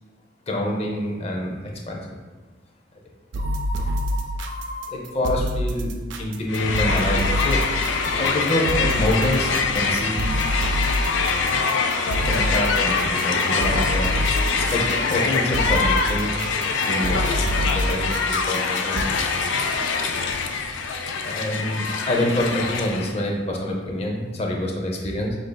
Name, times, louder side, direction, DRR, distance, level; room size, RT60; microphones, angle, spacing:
voice 1, 0.5-2.2 4.9-7.6 8.2-10.3 12.3-14.1 14.7-19.1 21.2-25.4, left 1 dB, 35° left, -1 dB, 0.6 m, -26 dB
sound 1, 3.3-19.0, equal, 80° right, 0.4 m, -27 dB
Crowd, 6.5-23.2, left 4 dB, 85° left, 0.4 m, -24 dB
7.8 x 2.6 x 2.2 m, 1.3 s
head